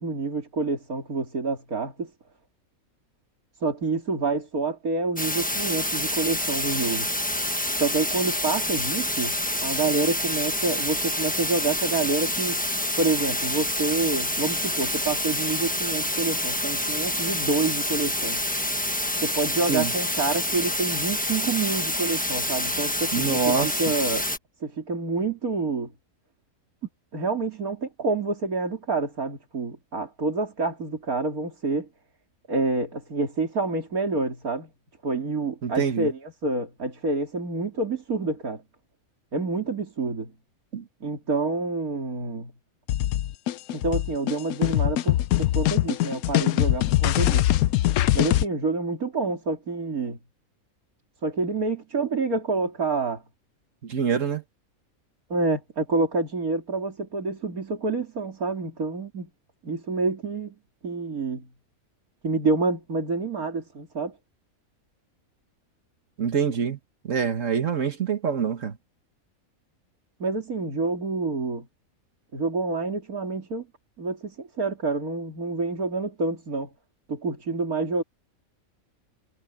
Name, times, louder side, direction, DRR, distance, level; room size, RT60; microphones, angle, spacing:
voice 1, 0.0-2.1 3.6-7.1 7.8-9.3 9.6-12.6 13.0-18.4 19.2-24.3 24.6-25.9 27.1-31.9 32.5-34.7 35.0-38.6 39.3-40.3 41.0-42.5 43.7-47.5 48.1-50.2 51.2-53.2 55.3-59.3 59.6-60.5 60.8-61.5 62.2-64.1 70.2-71.7 72.3-73.7 74.0-76.7 77.1-78.0, right 3 dB, 85° right, 3.6 m, -28 dB
sound 1, 5.2-24.4, left 1 dB, 5° left, 1.3 m, -27 dB
voice 2, 23.1-23.8 35.6-36.1 40.7-40.8 53.8-54.4 66.2-66.8 67.0-68.8, right 6 dB, 60° right, 1.7 m, -25 dB
sound 2, 42.9-48.4, left 14 dB, 90° left, 1.1 m, -22 dB
omnidirectional pair, 1.5 m